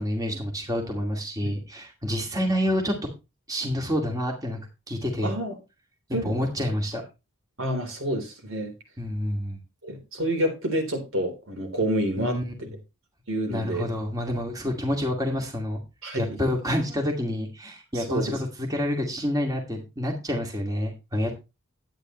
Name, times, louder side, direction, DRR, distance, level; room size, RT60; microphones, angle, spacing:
voice 1, 0.0-2.9 3.5-4.6 4.9-5.3 6.2-7.0 9.0-9.6 12.2-12.7 13.5-15.8 16.2-21.3, equal, 15° right, 1 dB, 2.3 m, -28 dB
voice 2, 5.2-5.5 6.1-6.3 7.6-8.7 9.8-12.4 13.3-13.9 16.0-16.3 17.9-18.3, right 1 dB, 70° right, 4 dB, 3.8 m, -28 dB
12.0 x 9.4 x 3.1 m, 0.27 s
head